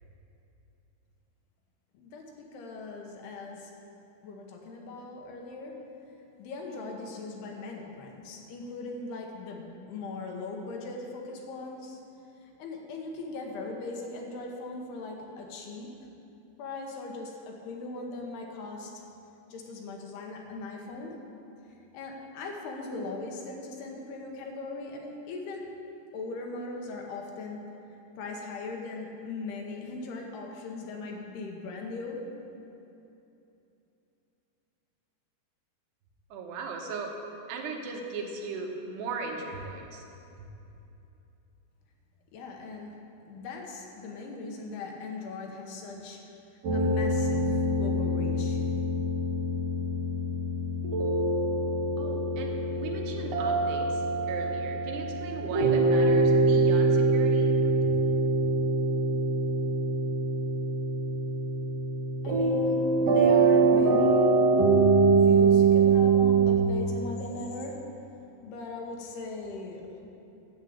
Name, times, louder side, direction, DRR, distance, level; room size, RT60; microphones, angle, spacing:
voice 1, 1.9-3.7 4.2-5.7 6.4-12.0 12.6-15.9 16.6-18.9 19.5-21.1 21.9-25.6 26.1-27.6 28.2-32.2 42.3-42.9 43.3-46.2 46.7-48.6 62.2-64.3 65.1-67.8 68.4-70.0, left 3 dB, 75° left, 0 dB, 3.1 m, -39 dB
voice 2, 36.3-37.2 37.5-40.0 52.0-57.6, right 4 dB, 80° right, 1 dB, 3.1 m, -38 dB
sound 1, 46.6-66.6, right 3 dB, 60° right, 1.8 m, -24 dB
10.5 x 7.3 x 8.4 m, 2.9 s
omnidirectional pair, 4.9 m